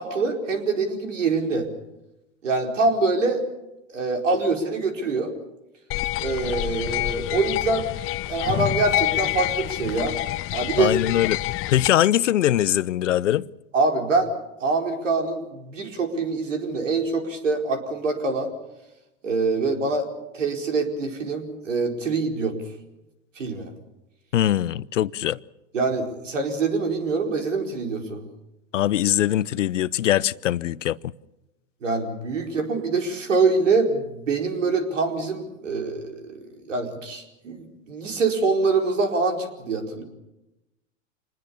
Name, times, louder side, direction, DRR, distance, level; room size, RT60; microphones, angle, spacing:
voice 1, 0.0-1.7 2.4-3.4 3.9-5.3 6.2-7.8 8.2-10.2 10.5-10.9 13.7-14.3 14.6-18.5 19.2-20.1 20.3-22.5 23.4-23.7 25.7-28.2 31.8-36.4 36.7-40.0, right 3 dB, 90° right, 4.7 m, -24 dB
sound 1, 5.9-11.9, left 17 dB, 35° left, 0.9 m, -27 dB
voice 2, 10.8-11.4 11.7-13.5 24.3-25.4 28.7-31.1, left 12 dB, 85° left, 0.8 m, -22 dB
26.0 x 20.0 x 6.9 m
hypercardioid pair, 105°, 36 cm